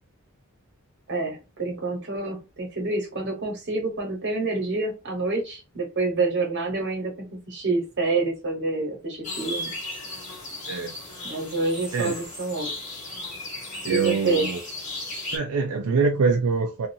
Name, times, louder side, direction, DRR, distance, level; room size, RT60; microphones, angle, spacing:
voice 1, 1.1-9.7 11.2-12.7 13.9-14.5, right 3 dB, 55° right, 1.1 m, -27 dB
sound 1, 9.2-15.4, left 2 dB, 35° left, 1.1 m, -35 dB
voice 2, 13.8-14.6 15.3-16.9, right 4 dB, 85° right, 0.4 m, -24 dB
2.5 x 2.4 x 2.6 m
head